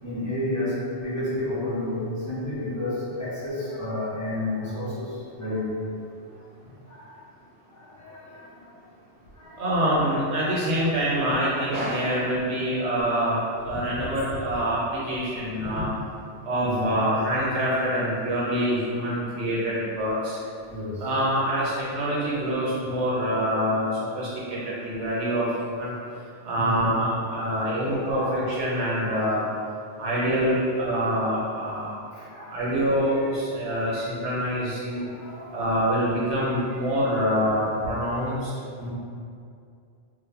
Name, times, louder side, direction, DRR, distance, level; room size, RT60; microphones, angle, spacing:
voice 1, 0.0-5.9 6.6-7.1 7.7-8.6 9.3-9.6 10.7-11.3 12.1-12.4 16.6-17.0 19.0-19.1 20.7-21.1 21.9-22.2 24.3-25.1 26.0-26.1 26.6-29.3 30.2-30.5 32.1-32.6 33.5-34.3 34.8-35.8 36.9-37.0 37.7-37.8 38.8-38.9, left 1 dB, 25° left, -11 dB, 0.4 m, -33 dB
voice 2, 9.6-13.4 13.7-15.9 16.4-20.4 21.0-25.9 26.4-29.4 30.0-31.9 32.5-35.0 35.5-38.5, equal, 75° right, -7 dB, 0.9 m, -25 dB
2.0 x 2.0 x 3.4 m, 2.4 s
omnidirectional pair, 1.2 m